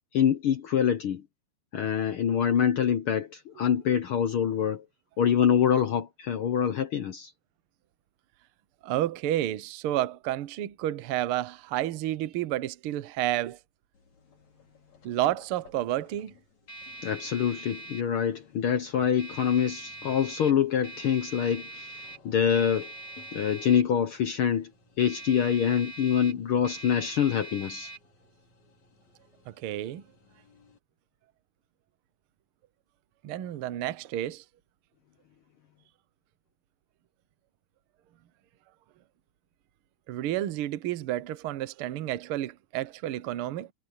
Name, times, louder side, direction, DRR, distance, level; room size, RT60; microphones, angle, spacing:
voice 1, 0.1-1.2 1.7-4.8 5.2-7.3 17.0-22.9 23.3-24.7 25.0-27.9, left 8 dB, 85° left, 1.1 m, -25 dB
voice 2, 8.8-13.6 15.0-16.3 29.5-30.0 33.2-34.4 40.1-43.7, right 13 dB, 75° right, 1.2 m, -30 dB
sound 1, 14.0-30.8, right 2 dB, 55° left, 6.0 m, -45 dB
omnidirectional pair, 3.8 m